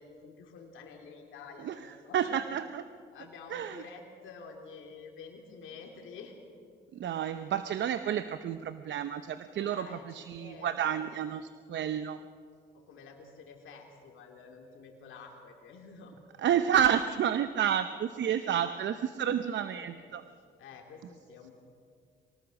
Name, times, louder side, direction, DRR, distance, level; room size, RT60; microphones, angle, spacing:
voice 1, 0.0-2.4 3.1-6.4 9.6-11.0 12.7-16.2 18.2-18.7 19.7-20.0 20.6-21.5, left 5 dB, 80° left, 1 dB, 2.8 m, -49 dB
voice 2, 2.1-2.8 3.5-3.8 7.0-12.2 16.4-20.2, right 9 dB, 65° right, 11 dB, 0.7 m, -30 dB
24.0 x 19.0 x 6.4 m, 2.2 s
cardioid pair, 90°, 20 cm